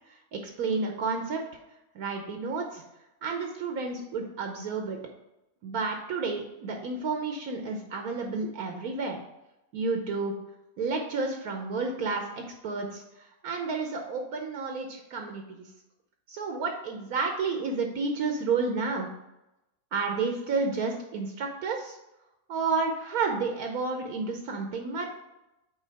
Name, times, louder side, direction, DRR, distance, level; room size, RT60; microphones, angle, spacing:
voice 1, 0.3-1.4 1.9-2.8 3.2-5.0 5.6-9.2 9.7-10.4 10.8-15.7 16.3-19.1 19.9-22.0 22.5-25.1, right 4 dB, 75° right, 3 dB, 1.2 m, -31 dB
5.6 x 4.3 x 4.6 m, 0.91 s
omnidirectional pair, 1.6 m